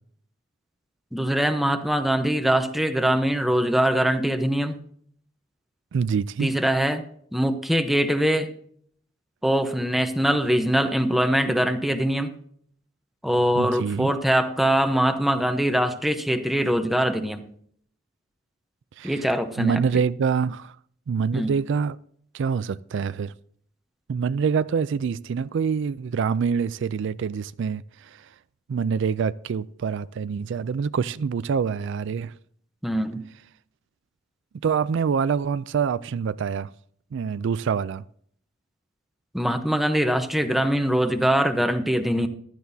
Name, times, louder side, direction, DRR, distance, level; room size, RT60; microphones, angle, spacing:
voice 1, 1.1-4.8 6.4-7.0 7.3-8.5 9.4-12.3 13.2-17.4 19.0-19.8 21.3-21.5 32.8-33.2 39.3-42.3, right 1 dB, ahead, 0.9 m, -22 dB
voice 2, 5.9-6.5 13.5-14.1 19.0-19.2 19.6-20.8 21.1-22.0 22.3-23.3 24.1-28.3 28.7-32.3 34.6-36.7 37.1-38.0, right 6 dB, 65° right, 0.4 m, -25 dB
15.5 x 12.5 x 2.7 m
head